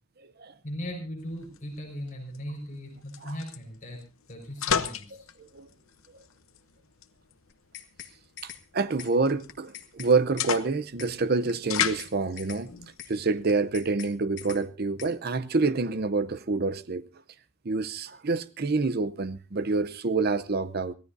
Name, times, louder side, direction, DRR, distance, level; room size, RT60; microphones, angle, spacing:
voice 1, 0.6-4.0 4.3-5.3, equal, 40° left, 4.9 m, -38 dB
sound 1, 1.2-13.7, left 8 dB, 85° left, 0.9 m, -36 dB
sound 2, 7.5-8.1 8.4-8.6 9.0-9.1 9.5-10.1 10.4-10.6 11.0-11.1 11.5-12.1 12.4-12.6 13.0-13.1 13.5-14.1 14.4-14.6 15.0-15.1, left 10 dB, 55° left, 1.5 m, -43 dB
voice 2, 8.4-12.7 13.1-17.0 17.6-20.9, right 3 dB, 50° right, 0.7 m, -27 dB
24.0 x 16.0 x 2.7 m
head